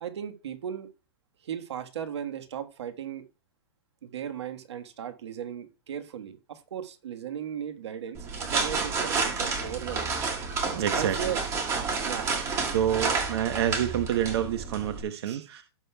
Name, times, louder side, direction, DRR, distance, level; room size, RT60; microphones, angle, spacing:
voice 1, 0.0-0.9 1.4-3.2 4.0-10.1 10.9-11.4 12.0-12.3 15.2-15.5, right 9 dB, 90° right, 1.5 m, -37 dB
sound 1, 8.1-15.0, right 4 dB, 20° right, 1.6 m, -30 dB
voice 2, 10.7-11.3 12.0-12.1 12.7-15.6, right 10 dB, 70° right, 1.0 m, -28 dB
17.0 x 6.5 x 2.3 m
supercardioid pair, 160°, 14 cm